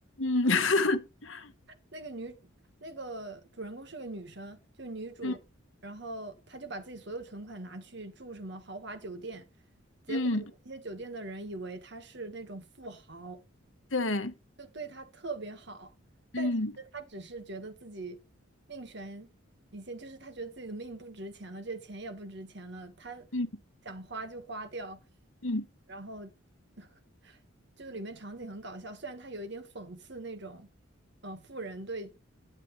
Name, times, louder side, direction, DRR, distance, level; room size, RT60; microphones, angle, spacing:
voice 1, 0.2-1.5 5.2-5.3 10.1-10.4 13.9-14.3 16.3-16.7 23.3-23.5 25.4-25.7, left 2 dB, 70° left, 1.4 m, -28 dB
voice 2, 1.7-2.5 2.8-5.4 5.8-9.5 10.1-13.4 14.6-15.9 16.3-18.2 18.7-19.3 19.7-23.3 23.9-25.0 25.9-26.3 26.8-27.4 27.8-30.7 31.2-32.1, right 2 dB, 55° right, 1.6 m, -42 dB
11.0 x 10.5 x 3.3 m
head